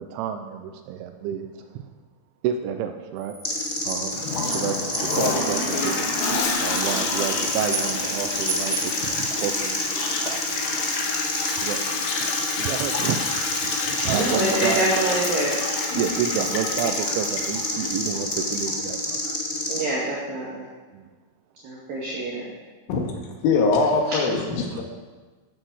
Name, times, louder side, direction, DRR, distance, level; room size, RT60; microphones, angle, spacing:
voice 1, 0.0-1.8 2.4-4.2 4.5-6.1 6.6-10.9 11.6-11.8 12.2-13.2 13.6-14.8 16.0-19.5 20.9-21.1, right 8 dB, 80° right, 7 dB, 3.0 m, -30 dB
sound 1, 3.2-9.0, right 3 dB, 5° right, 3.6 m, -36 dB
sound 2, 3.4-19.8, left 1 dB, 30° left, 1.1 m, -28 dB
Toilet flush, 4.1-18.7, left 4 dB, 65° left, 2.4 m, -29 dB
voice 2, 14.1-15.5 19.7-20.7 21.6-22.4, right 1 dB, 55° right, -6 dB, 3.2 m, -25 dB
voice 3, 23.4-24.8, left 4 dB, 85° left, 1 dB, 4.5 m, -21 dB
15.5 x 8.8 x 6.3 m, 1.4 s
omnidirectional pair, 5.8 m